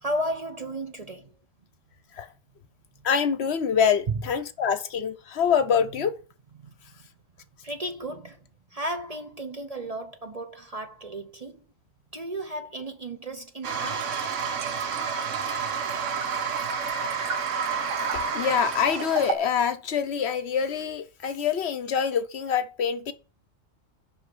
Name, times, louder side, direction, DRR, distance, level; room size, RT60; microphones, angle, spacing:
voice 1, 0.0-1.3 4.1-4.2 6.6-7.1 7.6-11.6 12.1-14.2, right 1 dB, 35° right, 0.7 m, -34 dB
voice 2, 3.0-6.1 18.1-23.1, left 7 dB, 60° left, 0.9 m, -25 dB
Toilet flush, 13.6-19.3, right 6 dB, 70° right, 1.3 m, -29 dB
8.1 x 5.5 x 6.0 m
omnidirectional pair, 1.3 m